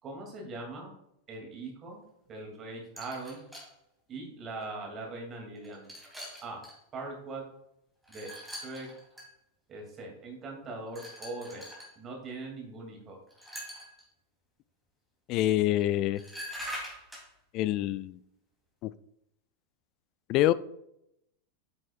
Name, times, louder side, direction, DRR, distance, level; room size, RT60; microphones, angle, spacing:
voice 1, 0.0-0.9 1.3-2.0 2.3-3.4 4.1-5.9 6.4-6.6 6.9-7.4 8.1-8.9 9.7-11.6 12.0-13.2, right 2 dB, 30° right, 0 dB, 2.6 m, -41 dB
sound 1, 3.0-3.7 4.6-4.7 5.5-6.8 8.0-9.3 10.9-11.9 13.3-14.0 15.8-15.9 16.2-17.3, equal, ahead, 3.2 m, -43 dB
voice 2, 15.3-16.2 17.5-18.2 18.8-18.9 20.3-20.5, left 14 dB, 40° left, 17 dB, 0.4 m, -26 dB
9.6 x 7.6 x 2.4 m, 0.80 s
figure-of-eight pair, 90°, 0 cm